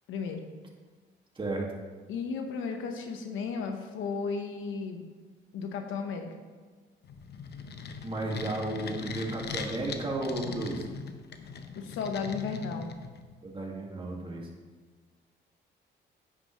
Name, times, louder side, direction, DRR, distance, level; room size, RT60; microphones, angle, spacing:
voice 1, 0.1-0.5 2.1-5.0 5.5-6.3 11.7-12.9, left 5 dB, 85° left, 5 dB, 1.1 m, -34 dB
voice 2, 1.4-1.7 8.0-10.9 13.4-14.5, right 2 dB, 25° right, -1 dB, 2.1 m, -33 dB
sound 1, 7.0-13.4, left 5 dB, 55° left, 0.9 m, -40 dB
9.5 x 9.2 x 3.2 m, 1.4 s
cardioid pair, 90°, 20 cm